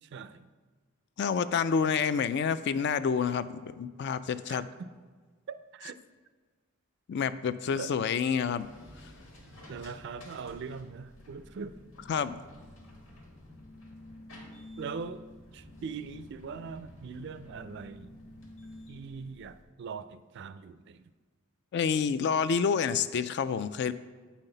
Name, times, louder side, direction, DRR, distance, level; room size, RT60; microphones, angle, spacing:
voice 1, 0.0-0.5 4.5-4.9 5.5-6.0 7.7-7.9 9.7-11.8 14.8-15.2 15.5-18.1 18.9-21.1, right 5 dB, 55° right, 12 dB, 0.3 m, -41 dB
voice 2, 1.2-4.7 7.1-8.7 12.1-12.4 21.7-23.9, left 6 dB, 55° left, 14 dB, 0.3 m, -28 dB
sound 1, 8.6-19.6, left 1 dB, 75° left, 1.8 m, -50 dB
8.2 x 5.7 x 3.9 m, 1.5 s
head